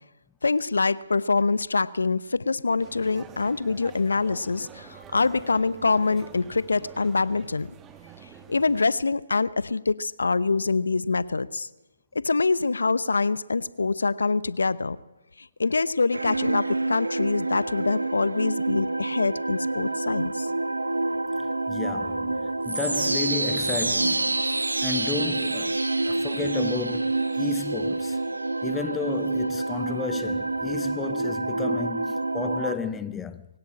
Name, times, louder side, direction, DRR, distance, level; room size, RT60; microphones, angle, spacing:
voice 1, 0.4-7.7 8.5-11.7 12.2-15.0 15.4-20.5, left 4 dB, 75° left, 0.8 m, -25 dB
sound 1, 2.8-8.8, right 8 dB, 15° right, 1.4 m, -47 dB
sound 2, 16.1-32.7, right 2 dB, 85° right, 1.3 m, -27 dB
voice 2, 21.7-28.2 28.6-33.5, left 6 dB, 10° left, 0.8 m, -33 dB
21.5 x 17.5 x 8.7 m
figure-of-eight pair, 140°, 0 cm